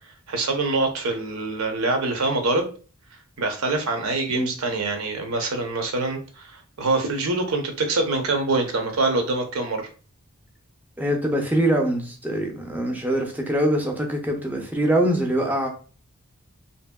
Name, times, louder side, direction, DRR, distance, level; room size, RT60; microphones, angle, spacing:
voice 1, 0.3-2.7 3.4-9.9, right 3 dB, 75° right, 4 dB, 0.7 m, -25 dB
voice 2, 11.0-15.7, right 1 dB, 10° right, 2 dB, 0.5 m, -23 dB
2.9 x 2.7 x 2.2 m, 0.38 s
head